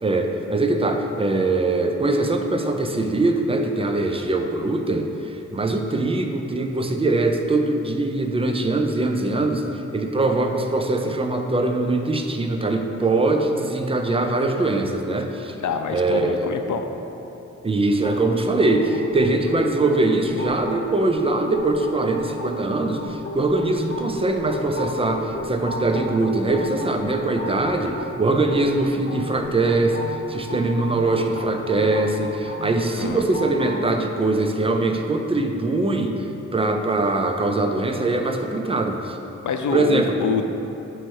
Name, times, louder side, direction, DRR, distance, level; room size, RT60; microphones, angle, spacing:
voice 1, 0.0-15.6 15.9-16.6 17.6-39.2 39.7-40.2, right 2 dB, 20° right, 4 dB, 0.4 m, -22 dB
voice 2, 15.6-16.9 33.0-33.2 39.4-40.5, left 5 dB, 85° left, 6 dB, 0.5 m, -25 dB
sound 1, 18.0-33.8, left 1 dB, 40° left, 0.9 m, -35 dB
7.6 x 3.1 x 6.2 m, 2.9 s
wide cardioid pair, 155°, 29 cm